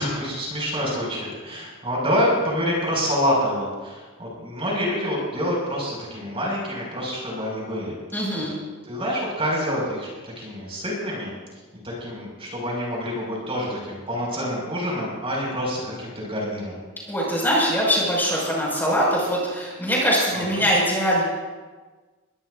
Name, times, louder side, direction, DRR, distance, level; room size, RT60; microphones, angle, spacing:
voice 1, 0.0-7.9 8.3-8.4 8.8-11.3 11.8-16.8 20.3-20.7, equal, 25° right, -3 dB, 5.6 m, -27 dB
voice 2, 8.1-8.5 17.1-21.2, equal, 10° left, -5 dB, 5.8 m, -22 dB
22.5 x 18.5 x 2.6 m, 1.3 s
head